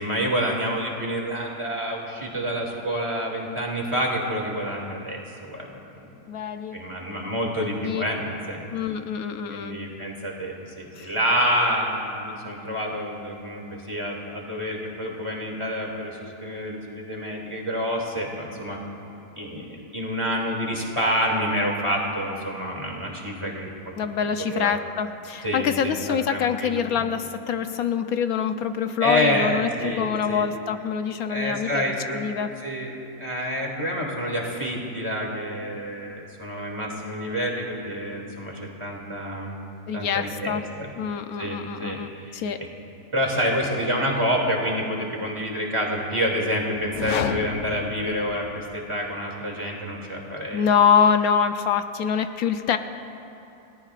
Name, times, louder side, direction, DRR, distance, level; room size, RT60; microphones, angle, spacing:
voice 1, 0.0-5.7 5.9-6.0 6.7-8.7 9.5-18.8 19.4-23.9 24.5-24.7 25.4-27.0 29.0-30.5 31.3-32.3 32.6-32.9 33.2-39.5 39.9-40.9 41.4-42.7 43.1-50.7, equal, 20° right, -2 dB, 2.5 m, -28 dB
voice 2, 6.3-6.8 7.6-8.0 8.7-9.8 11.0-11.1 24.0-32.5 39.9-40.6 41.0-42.6 50.5-52.8, left 7 dB, 80° left, 8 dB, 1.2 m, -25 dB
sound 1, 46.8-48.9, left 8 dB, 65° left, 0.8 m, -32 dB
29.5 x 18.5 x 2.5 m, 3.0 s
omnidirectional pair, 1.5 m